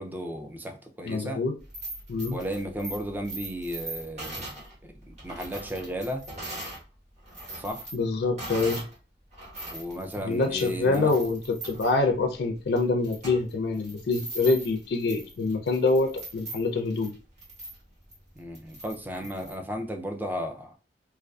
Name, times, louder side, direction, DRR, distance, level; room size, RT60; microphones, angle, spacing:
voice 1, 0.0-1.4 2.3-4.5 4.8-6.3 7.6-7.9 9.7-11.2 18.4-20.8, equal, 10° right, 0.3 m, -34 dB
voice 2, 1.1-1.5 2.1-2.4 7.9-8.9 10.2-17.1, left 3 dB, 65° left, 0.4 m, -25 dB
sound 1, 1.6-6.8 7.2-8.9 9.3-19.5, right 2 dB, 40° right, 1.1 m, -41 dB
2.4 x 2.3 x 2.3 m
head